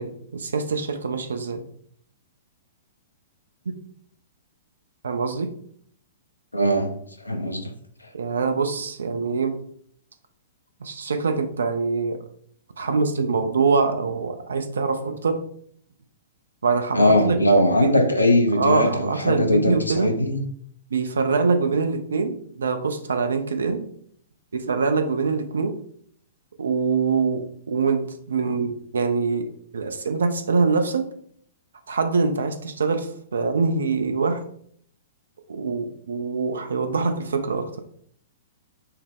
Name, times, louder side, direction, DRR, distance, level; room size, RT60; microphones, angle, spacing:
voice 1, 0.0-1.7 3.7-3.8 5.0-5.5 8.1-9.5 10.8-12.2 12.8-15.4 16.6-17.4 17.7-18.1 18.5-20.1 20.9-23.8 24.5-25.8 26.6-31.1 31.9-34.4 35.5-37.8, right 4 dB, 65° right, 0.5 m, -24 dB
voice 2, 6.5-6.9 7.2-7.6 16.9-20.4, left 1 dB, 80° left, 0.7 m, -20 dB
5.7 x 2.1 x 3.5 m
figure-of-eight pair, 110°, 0 cm